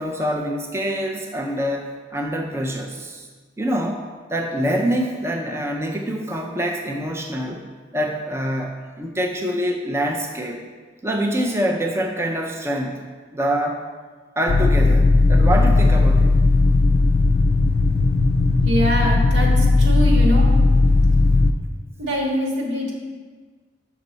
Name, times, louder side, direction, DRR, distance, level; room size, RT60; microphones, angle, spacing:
voice 1, 0.0-3.3 3.6-4.0 4.3-7.7 7.9-10.6 11.0-13.1 13.3-13.8 14.4-16.3, equal, 15° right, 0 dB, 0.4 m, -25 dB
sound 1, 14.5-21.5, left 3 dB, 55° left, 0.4 m, -16 dB
voice 2, 18.6-20.5 22.0-22.9, equal, 80° right, -2 dB, 1.7 m, -23 dB
6.6 x 6.0 x 4.1 m, 1.5 s
head